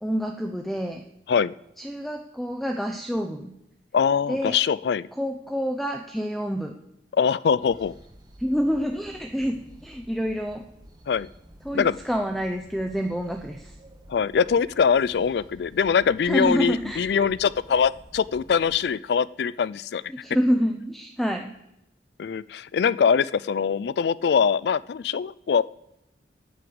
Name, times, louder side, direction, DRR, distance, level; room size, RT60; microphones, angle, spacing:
voice 1, 0.0-1.0 1.8-3.5 4.3-4.6 5.2-6.7 8.4-10.7 11.6-13.7 16.2-17.0 20.1-21.5, equal, ahead, 4 dB, 0.6 m, -27 dB
voice 2, 3.9-5.1 7.1-7.9 11.1-11.3 11.7-12.0 14.1-20.0 22.2-25.6, left 6 dB, 65° left, 19 dB, 0.3 m, -23 dB
sound 1, 7.6-18.8, right 1 dB, 20° right, 1.4 m, -49 dB
9.7 x 9.3 x 7.8 m, 0.85 s
head